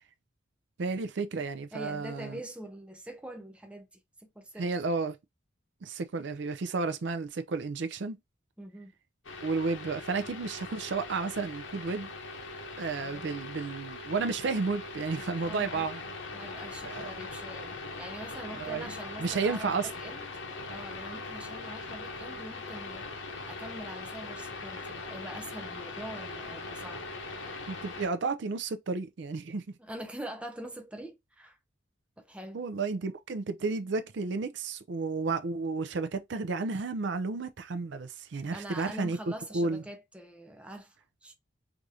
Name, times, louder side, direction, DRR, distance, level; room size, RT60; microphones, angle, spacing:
voice 1, 0.8-2.4 4.6-5.2 5.8-8.2 9.4-12.1 12.8-16.0 16.8-17.1 18.5-19.9 27.7-29.6 32.5-39.2 39.5-39.8, right 4 dB, 60° right, 0.4 m, -32 dB
voice 2, 1.7-4.7 8.6-8.9 13.0-13.4 15.4-15.9 16.3-20.3 20.7-27.0 29.8-31.6 32.2-32.6 38.5-41.3, right 1 dB, 5° right, 0.5 m, -44 dB
sound 1, 9.2-28.1, left 3 dB, 80° left, 0.9 m, -41 dB
4.7 x 2.6 x 2.7 m
head